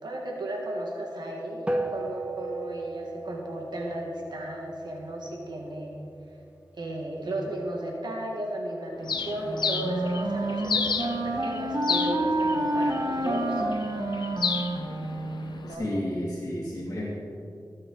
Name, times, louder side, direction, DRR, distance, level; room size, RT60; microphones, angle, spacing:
voice 1, 0.0-6.0 6.7-13.6 15.6-15.9, right 1 dB, 80° right, -1 dB, 1.9 m, -34 dB
sound 1, 1.7-6.3, right 2 dB, 15° right, 1.1 m, -36 dB
Bird, 9.1-15.7, left 5 dB, 85° left, 0.6 m, -33 dB
Wind instrument woodwind instrument, 9.5-15.6, right 1 dB, 55° right, 1.1 m, -29 dB
voice 2, 15.7-17.1, left 1 dB, 35° left, -8 dB, 2.6 m, -31 dB
20.5 x 7.7 x 4.0 m, 2.5 s
wide cardioid pair, 80°, 7 cm